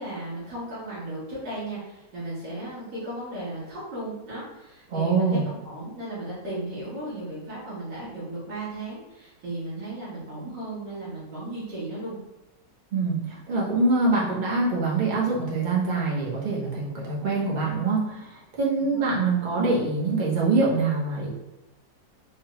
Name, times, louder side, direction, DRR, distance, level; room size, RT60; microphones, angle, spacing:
voice 1, 0.0-12.2 18.8-19.3, right 1 dB, 75° right, -9 dB, 2.2 m, -35 dB
voice 2, 4.9-5.4 12.9-21.3, right 3 dB, 35° right, -5 dB, 0.9 m, -24 dB
4.7 x 2.3 x 3.1 m, 0.96 s
omnidirectional pair, 1.9 m